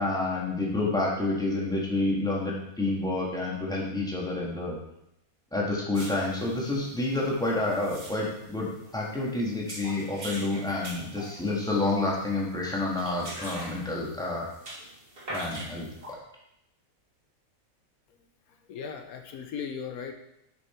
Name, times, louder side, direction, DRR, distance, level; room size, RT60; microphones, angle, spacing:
voice 1, 0.0-4.8 5.5-14.5 15.3-16.2, left 2 dB, 5° left, -3 dB, 1.7 m, -29 dB
sound 1, 5.9-16.1, right 1 dB, 40° right, 2.0 m, -43 dB
voice 2, 18.5-20.1, left 7 dB, 80° left, 6 dB, 1.3 m, -37 dB
8.9 x 6.2 x 4.5 m, 0.82 s
omnidirectional pair, 1.5 m